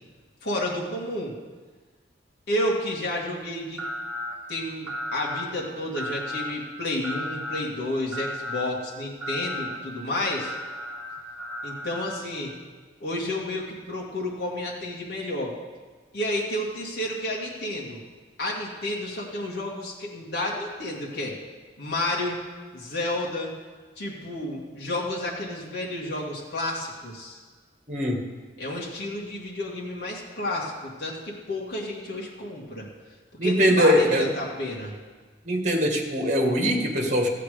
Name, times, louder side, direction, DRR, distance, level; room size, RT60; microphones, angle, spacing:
voice 1, 0.4-1.4 2.5-3.8 4.5-10.5 11.6-12.5 13.0-15.6 16.1-18.0 18.4-21.3 21.8-22.4 22.7-23.5 24.0-27.4 28.6-32.9 33.4-35.0, left 1 dB, 60° left, -4 dB, 2.1 m, -31 dB
sound 1, 3.8-4.3 4.9-5.4 5.9-6.5 7.0-7.6 8.1-8.7 9.2-9.8 10.3-12.2, left 1 dB, 5° right, 3.0 m, -34 dB
voice 2, 27.9-28.3 33.4-34.3 35.5-37.3, equal, 40° right, 1 dB, 1.9 m, -22 dB
14.5 x 9.1 x 5.1 m, 1.4 s
head